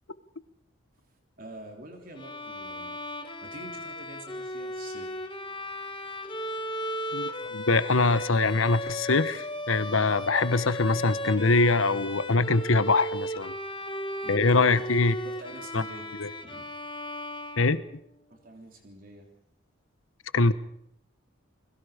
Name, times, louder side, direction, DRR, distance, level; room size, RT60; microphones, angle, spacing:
voice 1, 1.4-3.0 3.4-5.2 14.2-14.8 15.2-16.1 16.4-16.7 18.3-19.3, right 1 dB, 45° right, 3 dB, 3.3 m, -46 dB
Bowed string instrument, 2.2-18.1, left 1 dB, 25° left, 1.7 m, -36 dB
voice 2, 7.1-13.5 14.3-15.1 15.7-15.8 16.2-16.3 17.6-17.8 20.3-20.5, left 3 dB, 80° left, 14 dB, 1.2 m, -23 dB
30.0 x 22.0 x 5.1 m, 0.73 s
head